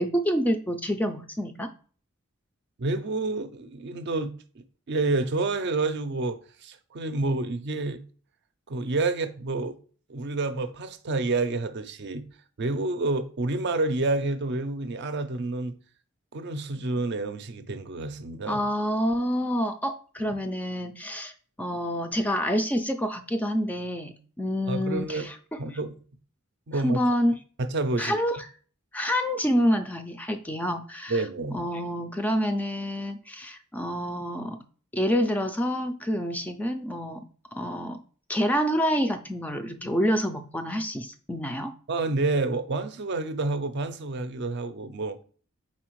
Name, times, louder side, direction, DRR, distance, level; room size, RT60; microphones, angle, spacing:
voice 1, 0.0-1.7 18.5-21.3 21.6-25.8 26.8-27.4 28.0-28.4 28.9-31.2 31.5-34.6 34.9-37.2 37.5-38.0 38.3-41.7, equal, 5° left, 0.3 m, -27 dB
voice 2, 2.8-4.3 4.9-8.0 8.7-9.8 10.1-12.2 12.6-15.7 16.3-18.6 24.7-25.3 25.6-25.9 26.7-27.1 27.6-28.2 31.1-31.6 41.9-45.2, right 3 dB, 55° right, 0.5 m, -29 dB
4.3 x 4.1 x 3.0 m
head